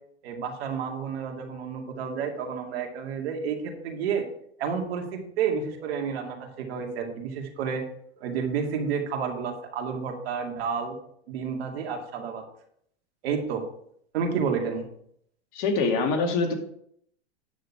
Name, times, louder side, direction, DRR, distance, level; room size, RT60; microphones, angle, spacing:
voice 1, 0.2-4.3 4.6-7.8 8.2-10.9 11.3-12.4 13.2-13.6 14.1-14.9, right 6 dB, 60° right, 2 dB, 2.3 m, -30 dB
voice 2, 15.5-16.5, left 4 dB, 45° left, 4 dB, 2.2 m, -24 dB
9.5 x 6.5 x 4.8 m, 0.68 s
hypercardioid pair, 120°, 34 cm